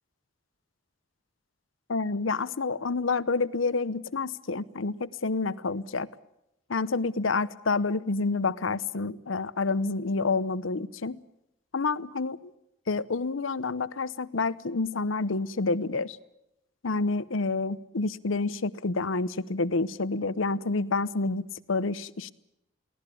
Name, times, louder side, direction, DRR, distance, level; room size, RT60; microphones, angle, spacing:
voice 1, 1.9-6.1 6.7-11.2 11.7-12.5 12.9-16.2 16.8-22.3, left 3 dB, 85° left, 16 dB, 0.8 m, -28 dB
23.5 x 17.5 x 8.4 m, 0.85 s
head